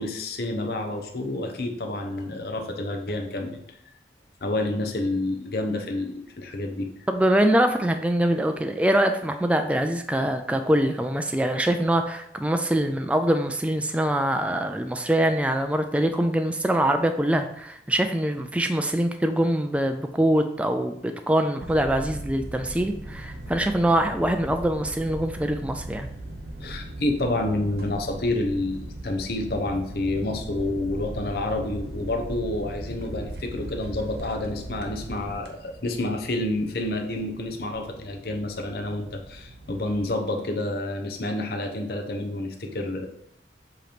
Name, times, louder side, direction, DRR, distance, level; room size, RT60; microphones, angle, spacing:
voice 1, 0.0-3.8 4.4-6.9 26.6-43.1, left 2 dB, 60° left, 3 dB, 0.8 m, -29 dB
voice 2, 7.1-26.1, right 1 dB, 5° right, 6 dB, 0.3 m, -24 dB
sound 1, 21.6-40.1, right 1 dB, 65° right, 1.1 m, -39 dB
7.7 x 3.0 x 5.0 m, 0.74 s
head